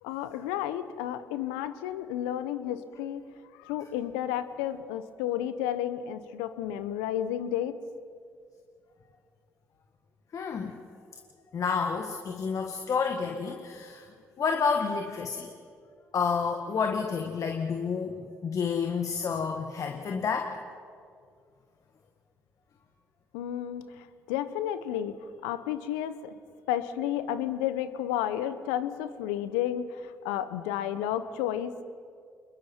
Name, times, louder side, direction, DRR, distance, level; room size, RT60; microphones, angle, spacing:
voice 1, 0.0-3.2 3.6-7.8 23.3-25.2 25.4-26.3 26.7-31.8, left 11 dB, 80° left, 12 dB, 1.0 m, -32 dB
voice 2, 10.3-10.8 11.5-14.1 14.4-15.5 16.1-20.6, left 5 dB, 50° left, 3 dB, 1.7 m, -30 dB
28.0 x 21.5 x 4.6 m, 2.2 s
hypercardioid pair, 50°, 7 cm